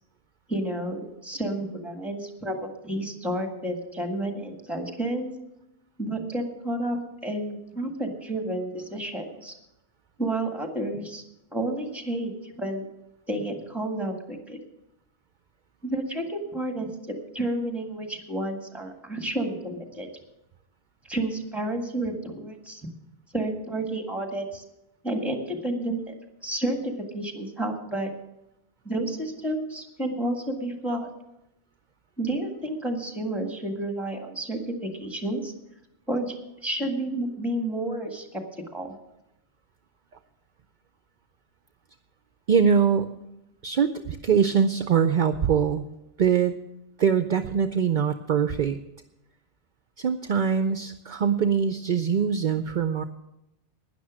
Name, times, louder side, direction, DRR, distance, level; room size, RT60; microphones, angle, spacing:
voice 1, 0.5-5.3 6.0-9.5 10.2-11.2 11.5-12.9 13.3-14.6 15.8-20.1 21.1-22.9 23.3-24.6 25.0-26.1 26.4-28.1 28.9-31.1 32.2-35.5 36.1-38.4 38.7-38.9, right 1 dB, ahead, 4 dB, 1.7 m, -30 dB
voice 2, 42.5-43.1 43.6-45.8 46.2-46.5 47.0-48.8 50.0-53.0, right 7 dB, 55° right, 9 dB, 0.6 m, -23 dB
12.0 x 10.0 x 6.2 m, 0.89 s
omnidirectional pair, 1.1 m